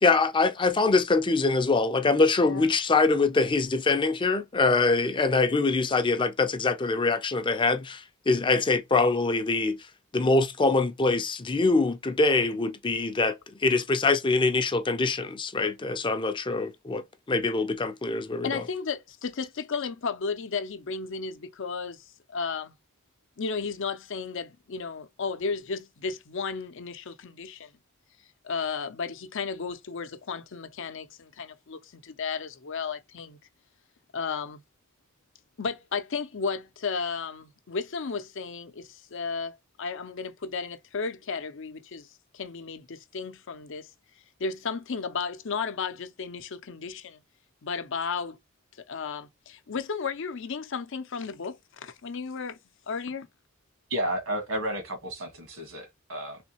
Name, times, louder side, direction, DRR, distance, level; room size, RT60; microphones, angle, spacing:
voice 1, 0.0-9.8 10.1-18.6, left 3 dB, 25° left, 0.5 m, -24 dB
voice 2, 18.4-22.7 23.4-27.7 28.4-33.4 34.1-34.6 35.6-43.9 44.4-47.2 47.6-48.4 48.9-52.6 52.9-53.3, left 5 dB, 65° left, 0.6 m, -34 dB
voice 3, 53.9-56.4, right 1 dB, 70° right, 1.6 m, -32 dB
3.5 x 3.2 x 2.9 m
head